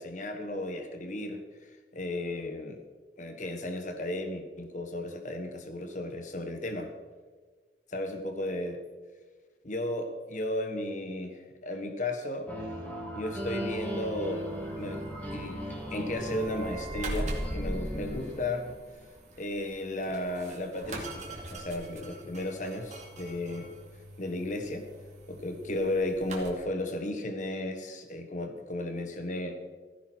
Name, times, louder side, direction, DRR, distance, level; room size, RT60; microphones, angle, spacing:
voice 1, 0.0-1.4 1.9-2.8 3.2-6.9 7.9-8.8 9.6-12.5 13.1-14.5 14.8-15.6 15.9-18.8 19.4-23.7 24.2-24.8 25.3-29.6, left 1 dB, 45° left, 5 dB, 1.5 m, -34 dB
sound 1, 12.5-19.1, equal, 10° left, 3.0 m, -38 dB
sound 2, 13.2-26.5, right 1 dB, 40° right, 2.5 m, -42 dB
15.5 x 15.0 x 4.6 m, 1.4 s
head